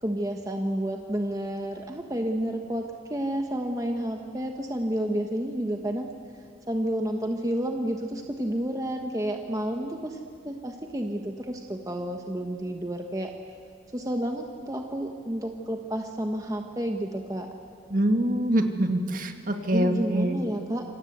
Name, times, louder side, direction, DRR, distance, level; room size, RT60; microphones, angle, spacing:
voice 1, 0.0-6.1 6.7-10.2 10.4-13.3 13.9-17.5 19.7-20.8, right 1 dB, 20° right, 3 dB, 1.3 m, -30 dB
voice 2, 17.9-20.4, right 1 dB, 45° right, 5 dB, 2.0 m, -25 dB
27.0 x 27.0 x 8.1 m, 2.3 s
head